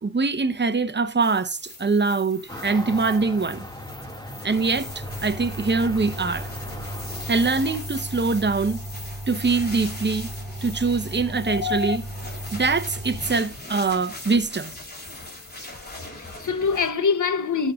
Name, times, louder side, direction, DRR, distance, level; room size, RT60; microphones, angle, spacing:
voice 1, 0.0-3.6 4.4-6.5 7.3-8.8 9.3-10.3 10.6-12.0 12.5-14.7, right 4 dB, 35° right, 0.9 m, -23 dB
sound 1, 1.2-16.9, left 1 dB, 30° left, 3.5 m, -41 dB
sound 2, 2.5-7.8, left 1 dB, 15° left, 2.0 m, -38 dB
sound 3, 4.7-13.4, right 1 dB, 10° right, 3.5 m, -36 dB
voice 2, 11.5-12.0 16.2-17.7, left 5 dB, 75° left, 1.0 m, -24 dB
13.0 x 6.5 x 2.4 m
cardioid pair, 50°, 30 cm